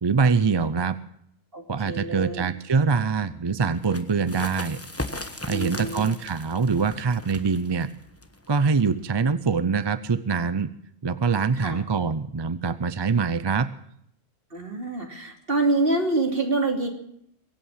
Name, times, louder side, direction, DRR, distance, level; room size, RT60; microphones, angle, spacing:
voice 1, 0.0-1.0 1.7-4.8 5.5-7.9 8.5-10.7 11.0-13.7, right 5 dB, 30° right, 14 dB, 0.5 m, -24 dB
voice 2, 1.5-2.5 5.5-6.0 11.6-11.8 14.5-16.9, right 2 dB, 55° right, 3 dB, 3.1 m, -26 dB
sound 1, 3.7-9.1, left 1 dB, 15° left, 1.1 m, -38 dB
23.0 x 8.6 x 7.3 m, 0.72 s
omnidirectional pair, 1.1 m